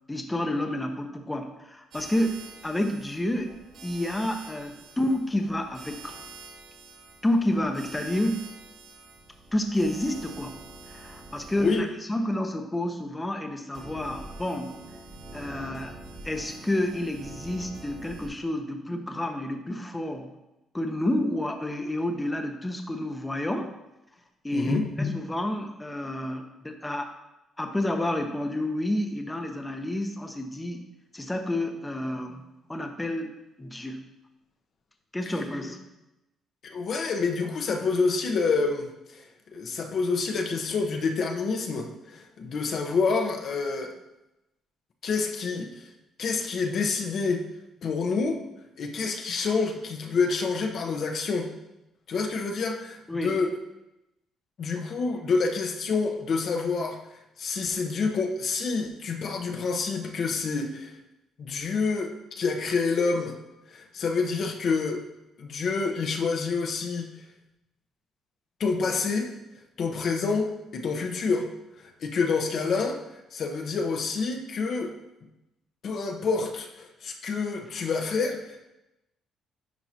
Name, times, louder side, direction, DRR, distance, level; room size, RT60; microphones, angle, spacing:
voice 1, 0.1-3.5 3.8-6.1 7.2-8.4 9.5-10.6 10.9-14.7 15.3-15.9 16.2-20.3 20.7-23.7 24.4-27.1 27.6-30.8 31.1-32.4 32.7-34.0 35.1-35.8 53.1-53.3, left 1 dB, 15° left, 5 dB, 0.8 m, -29 dB
sound 1, 1.9-11.8 13.7-18.3, right 2 dB, 80° right, 2.6 m, -45 dB
voice 2, 11.6-11.9 24.5-24.9 35.3-35.4 36.6-43.9 45.0-45.9 46.2-47.4 47.8-48.4 48.8-51.5 52.1-53.5 54.6-57.0 57.4-60.9 61.4-63.4 63.7-65.0 65.4-67.1 68.6-69.3 69.8-71.5 71.8-73.0 73.3-74.9 75.8-78.7, left 4 dB, 60° left, 3 dB, 0.9 m, -28 dB
10.5 x 4.8 x 2.9 m, 0.95 s
cardioid pair, 85°, 0 cm